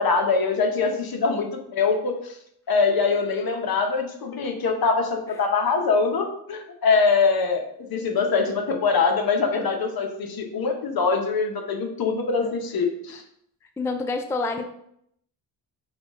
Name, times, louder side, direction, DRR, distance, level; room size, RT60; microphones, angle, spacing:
voice 1, 0.0-2.4 2.7-7.6 7.9-13.2, left 4 dB, 60° left, 4 dB, 0.9 m, -23 dB
voice 2, 13.8-14.6, left 3 dB, 5° left, 6 dB, 0.3 m, -28 dB
5.9 x 2.4 x 3.6 m, 0.73 s
cardioid pair, 70°, 40 cm